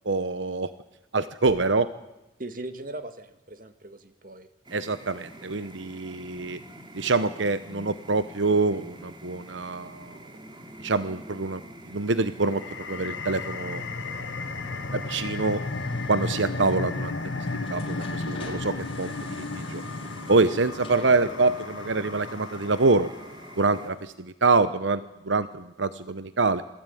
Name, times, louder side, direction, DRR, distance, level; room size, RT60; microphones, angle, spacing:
voice 1, 0.0-0.7 1.1-1.9 4.7-6.6 6.9-10.2 10.8-11.6 11.9-13.8 14.9-15.6 16.1-19.8 20.3-23.1 23.6-26.6, right 3 dB, 80° right, 13 dB, 0.9 m, -25 dB
voice 2, 2.4-4.5 6.1-6.2, right 2 dB, 45° right, 9 dB, 1.9 m, -39 dB
sound 1, 4.6-23.9, right 1 dB, 25° right, 3.1 m, -46 dB
sound 2, 12.4-23.6, left 3 dB, 80° left, 1.6 m, -34 dB
sound 3, 13.4-24.1, left 2 dB, 30° left, 5.0 m, -49 dB
28.0 x 20.0 x 9.3 m, 1.0 s
head